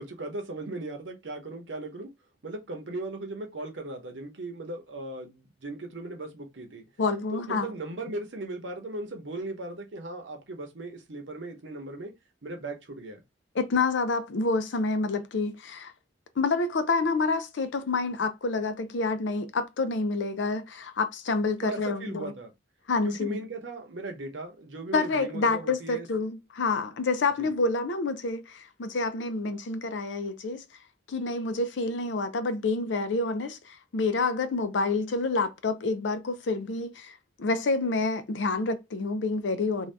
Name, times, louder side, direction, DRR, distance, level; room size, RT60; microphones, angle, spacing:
voice 1, 0.0-2.1 2.4-6.8 7.3-12.1 12.4-13.2 21.6-22.5 23.0-26.1 27.4-27.5, right 2 dB, 75° right, 0.9 m, -38 dB
voice 2, 7.0-7.7 13.6-15.9 16.4-22.3 22.9-23.4 24.9-30.6 31.1-39.9, left 3 dB, 75° left, 0.5 m, -28 dB
2.7 x 2.3 x 3.3 m
head